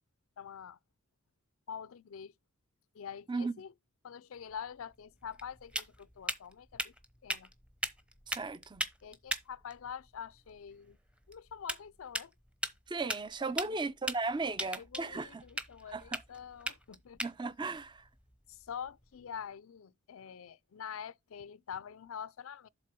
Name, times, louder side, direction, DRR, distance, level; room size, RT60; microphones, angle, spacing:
voice 1, 0.4-0.8 1.7-2.3 2.9-3.7 4.0-6.9 7.2-7.5 9.0-11.0 11.3-12.3 13.6-13.8 14.6-17.2 18.5-22.7, left 7 dB, 75° left, 0.4 m, -45 dB
sound 1, 4.5-19.2, equal, 5° right, 0.8 m, -41 dB
voice 2, 8.3-8.8 12.9-15.4 15.9-16.2 17.2-18.1, right 3 dB, 20° right, 0.5 m, -36 dB
7.5 x 4.1 x 6.0 m
head